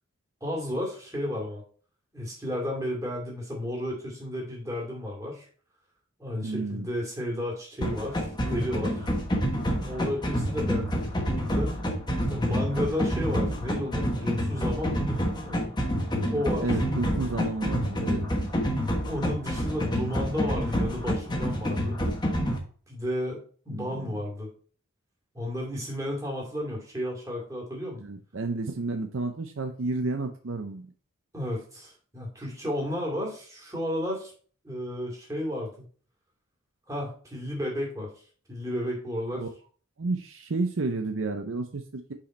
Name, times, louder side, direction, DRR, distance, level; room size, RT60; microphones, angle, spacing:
voice 1, 0.4-1.6 2.1-5.5 6.2-9.1 9.8-11.7 12.3-15.7 16.3-16.7 19.1-22.0 22.9-24.5 25.3-28.0 31.3-34.3 34.6-35.7 36.9-38.1 38.5-39.4, left 1 dB, 15° right, -3 dB, 2.2 m, -32 dB
voice 2, 6.4-6.9 16.2-18.2 23.7-24.0 28.0-30.8 39.3-39.5 40.0-42.1, right 3 dB, 60° right, 6 dB, 0.6 m, -31 dB
sound 1, 7.8-22.6, equal, 20° left, 1.1 m, -28 dB
5.7 x 5.1 x 4.2 m, 0.43 s
head